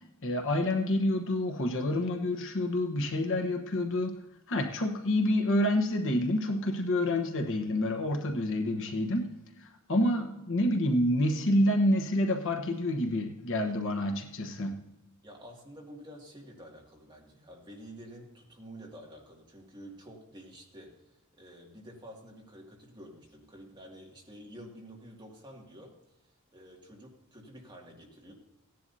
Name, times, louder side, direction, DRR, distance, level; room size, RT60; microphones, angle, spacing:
voice 1, 0.2-4.2 4.5-9.3 9.6-14.8, left 1 dB, 60° left, 4 dB, 1.1 m, -28 dB
voice 2, 15.2-20.9 21.3-25.9 26.5-28.3, equal, 20° right, -2 dB, 2.2 m, -49 dB
16.5 x 10.5 x 2.8 m, 0.97 s
head